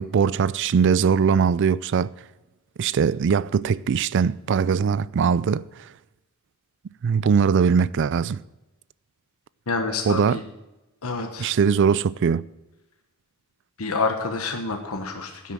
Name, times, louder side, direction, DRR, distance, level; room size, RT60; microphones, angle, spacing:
voice 1, 0.0-2.1 2.8-5.7 7.0-8.4 10.1-10.4 11.4-12.4, right 6 dB, 55° right, 0.4 m, -21 dB
voice 2, 9.7-10.4 11.0-11.5 13.8-15.5, left 3 dB, 85° left, 1.3 m, -28 dB
10.0 x 8.3 x 7.4 m
head